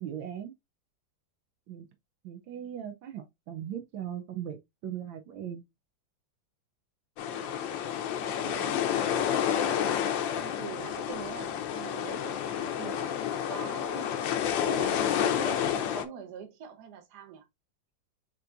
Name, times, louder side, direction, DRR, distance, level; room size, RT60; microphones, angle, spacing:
voice 1, 0.0-0.5 1.7-1.9 2.2-5.6, right 10 dB, 80° right, 1.5 m, -39 dB
sound 1, 7.2-16.1, left 9 dB, 75° left, 1.4 m, -30 dB
voice 2, 7.3-7.8 8.2-10.0 10.3-13.1 13.5-14.2 14.6-17.5, right 7 dB, 60° right, 1.5 m, -43 dB
6.9 x 3.0 x 2.5 m
omnidirectional pair, 2.1 m